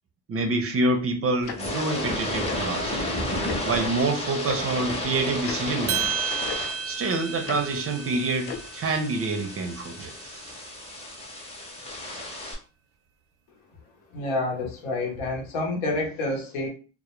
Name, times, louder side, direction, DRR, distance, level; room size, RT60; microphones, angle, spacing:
voice 1, 0.3-3.4 3.7-6.2 6.8-10.6, right 2 dB, 30° right, 0.5 m, -27 dB
sound 1, 1.4-12.5, left 1 dB, 15° left, 0.6 m, -33 dB
Tick-tock, 1.5-1.6 2.4-2.6 3.4-3.6 4.4-4.6 5.4-5.6 6.4-6.6 7.4-7.6 8.4-8.6, left 7 dB, 55° left, 0.5 m, -34 dB
sound 2, 5.9-10.3, right 8 dB, 80° right, 0.6 m, -33 dB
voice 2, 14.1-16.7, left 2 dB, 90° left, 0.9 m, -28 dB
2.2 x 2.1 x 2.9 m
cardioid pair, 105°, 46 cm